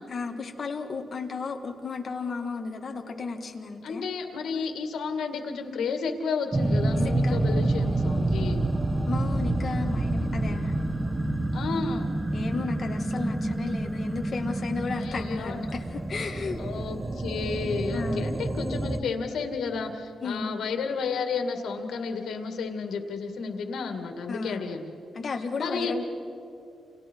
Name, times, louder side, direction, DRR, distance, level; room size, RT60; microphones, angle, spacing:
voice 1, 0.1-4.1 7.2-7.4 9.1-10.7 12.3-16.6 17.9-18.3 20.2-20.5 24.3-24.7 25.2-26.0, left 4 dB, 40° left, 3 dB, 1.8 m, -34 dB
voice 2, 3.8-8.6 11.5-12.1 14.9-15.6 16.6-25.0 25.6-26.0, left 5 dB, 90° left, 5 dB, 2.2 m, -32 dB
sound 1, 6.5-19.0, right 2 dB, 15° right, 1.0 m, -28 dB
29.5 x 28.5 x 4.6 m, 2.7 s
wide cardioid pair, 160°, 0 cm